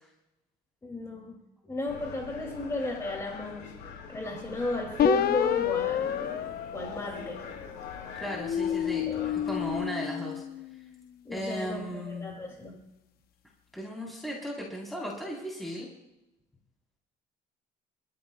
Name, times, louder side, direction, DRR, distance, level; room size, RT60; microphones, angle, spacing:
voice 1, 0.8-3.8 4.1-7.5 9.1-9.4 11.2-12.8, left 2 dB, 20° left, 1 dB, 2.5 m, -34 dB
sound 1, 1.9-9.9, left 6 dB, 90° left, 3.9 m, -44 dB
sound 2, 5.0-7.7 8.3-10.8, left 9 dB, 65° left, 0.8 m, -29 dB
voice 2, 8.1-10.4 11.3-12.3 13.7-15.9, equal, ahead, -4 dB, 3.8 m, -36 dB
28.0 x 14.0 x 2.3 m, 0.95 s
cardioid pair, 110°, 17 cm